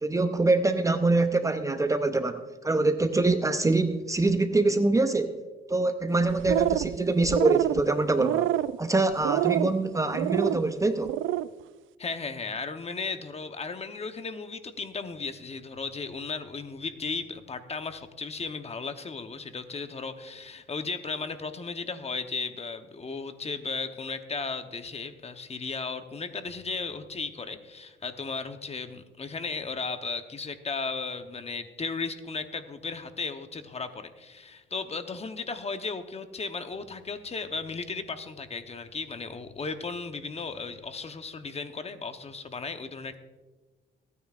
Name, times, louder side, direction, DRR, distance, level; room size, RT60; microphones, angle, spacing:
voice 1, 0.0-5.4 5.7-8.5 8.8-11.2, right 2 dB, 15° right, 9 dB, 0.6 m, -24 dB
sound 1, 6.3-7.0 7.2-7.8 8.2-8.8 9.2-9.7 10.1-10.6 11.0-11.5, right 14 dB, 80° right, 0.4 m, -26 dB
voice 2, 12.0-43.2, left 4 dB, 30° left, 9 dB, 0.9 m, -35 dB
24.5 x 9.5 x 2.5 m, 1.3 s
cardioid pair, 90°, 20 cm